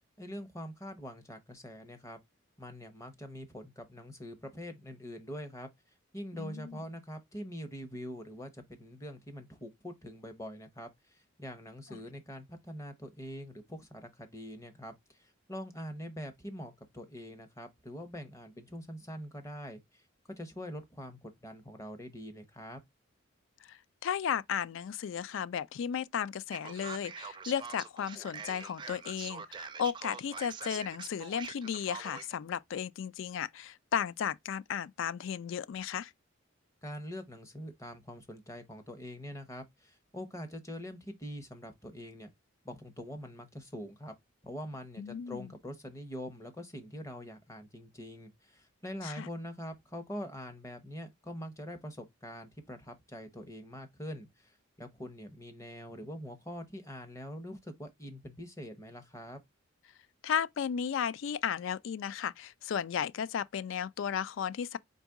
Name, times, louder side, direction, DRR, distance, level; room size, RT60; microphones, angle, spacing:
voice 1, 0.2-2.2 2.6-5.7 6.1-20.0 20.3-22.8 36.8-42.3 42.6-44.1 44.4-59.4, equal, 15° left, 0.8 m, -44 dB
voice 2, 6.3-6.8 11.9-12.0 23.6-36.1 45.0-45.5 49.0-49.3 60.2-64.8, left 8 dB, 65° left, 0.3 m, -34 dB
Male speech man speaking, 26.5-32.3, right 6 dB, 20° right, 0.4 m, -44 dB
4.0 x 3.6 x 3.5 m
head